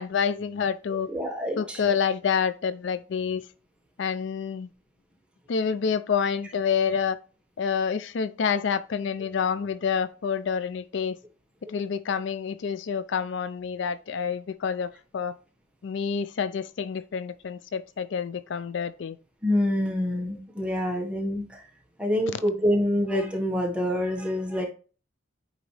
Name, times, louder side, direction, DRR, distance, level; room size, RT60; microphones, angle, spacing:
voice 1, 0.0-1.1 1.5-3.5 4.0-4.7 5.5-7.2 7.6-11.2 11.7-15.3 15.8-19.2, left 6 dB, 65° left, 0.4 m, -28 dB
voice 2, 0.9-1.8 19.4-21.6 22.0-24.7, left 1 dB, 5° right, 1.4 m, -26 dB
8.7 x 3.9 x 3.3 m
head